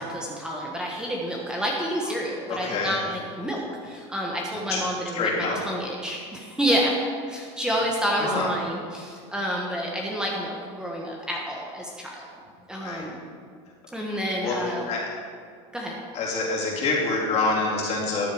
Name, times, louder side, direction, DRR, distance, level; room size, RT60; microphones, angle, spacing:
voice 1, 0.0-5.3 5.6-7.0 7.3-12.3 12.7-13.2 13.9-14.9 15.7-15.9, equal, 5° right, -3 dB, 1.5 m, -29 dB
voice 2, 2.5-3.0 4.7-4.8 5.1-5.6 8.2-8.5 12.8-13.1 14.4-15.0 16.1-18.3, left 3 dB, 45° left, -4 dB, 3.5 m, -26 dB
13.0 x 7.8 x 5.0 m, 2.2 s
supercardioid pair, 120°, 15 cm